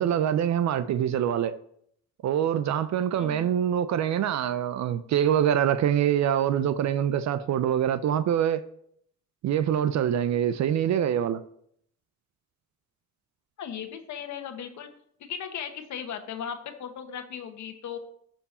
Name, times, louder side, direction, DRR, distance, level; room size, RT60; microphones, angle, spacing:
voice 1, 0.0-1.5 2.2-8.6 9.4-11.4, right 9 dB, 65° right, 0.6 m, -25 dB
voice 2, 3.2-3.5 13.6-14.9 15.2-18.0, left 8 dB, 70° left, 1.3 m, -37 dB
13.0 x 4.6 x 4.2 m
cardioid pair, 90°, 30 cm